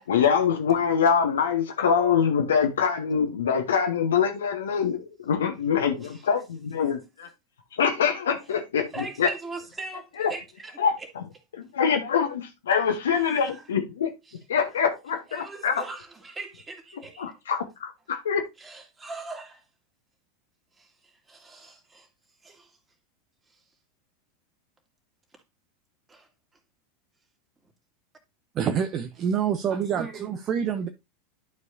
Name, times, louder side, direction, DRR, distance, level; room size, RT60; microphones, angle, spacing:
voice 1, 0.1-7.3 7.8-9.3 10.2-10.3 10.8-11.2 11.5-14.1 14.5-15.9 17.2-18.4, left 7 dB, 70° left, 1.0 m, -24 dB
voice 2, 8.9-10.8 13.2-13.6 15.3-17.3 18.6-19.6 20.8-20.9 21.3-22.1 22.4-22.7 26.1-26.3 29.7-30.2, right 3 dB, 15° right, 2.4 m, -40 dB
voice 3, 28.5-30.9, right 8 dB, 35° right, 0.8 m, -27 dB
12.0 x 4.7 x 2.7 m
figure-of-eight pair, 85°, 0 cm